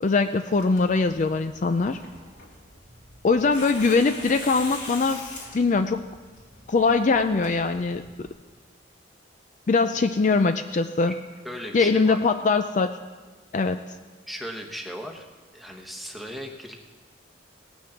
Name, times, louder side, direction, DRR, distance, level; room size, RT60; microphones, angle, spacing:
voice 1, 0.0-2.0 3.2-5.2 5.5-6.0 6.7-8.0 9.7-11.1 11.7-13.0 13.5-13.8, left 4 dB, 40° left, 8 dB, 0.4 m, -22 dB
Tearing, 0.5-8.3, left 2 dB, 80° left, 3.0 m, -43 dB
voice 2, 11.4-12.2 14.3-15.3 15.5-16.8, equal, ahead, 2 dB, 1.2 m, -37 dB
18.0 x 6.2 x 7.1 m, 1.4 s
head